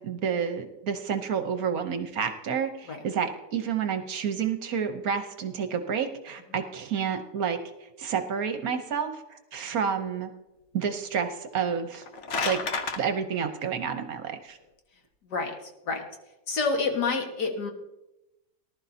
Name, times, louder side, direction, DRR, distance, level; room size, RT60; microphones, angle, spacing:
voice 1, 0.0-7.6 8.0-10.3 10.7-12.0 12.4-12.6 13.0-14.6, right 7 dB, 60° right, 7 dB, 1.2 m, -29 dB
sound 1, 11.8-13.0, left 4 dB, 50° left, 1.1 m, -30 dB
voice 2, 15.2-16.0 16.5-17.7, left 4 dB, 70° left, 3 dB, 2.2 m, -28 dB
19.0 x 12.0 x 2.8 m, 0.97 s
omnidirectional pair, 1.8 m